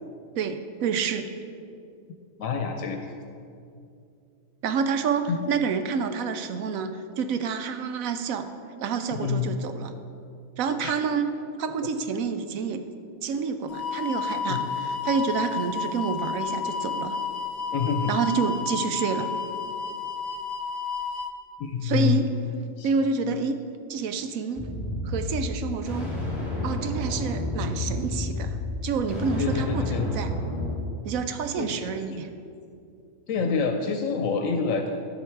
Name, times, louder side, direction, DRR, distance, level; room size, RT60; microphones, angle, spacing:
voice 1, 0.3-1.3 4.6-8.5 8.8-9.9 10.6-11.3 11.6-12.8 13.2-17.2 18.1-19.3 21.8-22.3 22.8-23.6 23.9-24.7 25.0-26.1 26.6-28.6 28.8-30.3 31.0-32.3, right 5 dB, 85° right, 9 dB, 1.1 m, -28 dB
voice 2, 2.4-3.0 5.3-5.4 9.1-9.5 10.8-10.9 14.5-14.6 17.7-18.2 21.6-22.2 22.8-22.9 29.4-30.1 31.6-31.7 33.3-34.9, left 6 dB, 75° left, 5 dB, 1.0 m, -26 dB
sound 1, 13.7-21.3, left 6 dB, 55° left, 0.5 m, -31 dB
sound 2, 24.6-30.7, left 2 dB, ahead, 2.3 m, -30 dB
12.5 x 5.6 x 4.5 m, 2.5 s
omnidirectional pair, 1.4 m